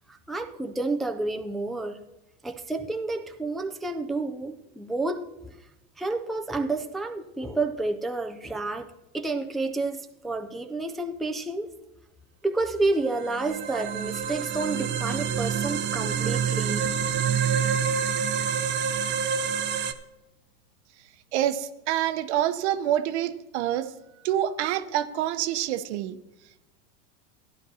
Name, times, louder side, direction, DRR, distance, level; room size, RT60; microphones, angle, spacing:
voice 1, 0.1-2.0 2.4-5.6 6.0-8.9 9.1-11.7 12.4-16.9, right 2 dB, ahead, 4 dB, 0.4 m, -30 dB
sound 1, 12.9-19.9, right 7 dB, 35° right, 0.7 m, -27 dB
voice 2, 21.3-23.9 24.2-26.2, right 11 dB, 80° right, 10 dB, 0.9 m, -27 dB
14.5 x 10.5 x 2.8 m, 0.95 s
supercardioid pair, 130°, 33 cm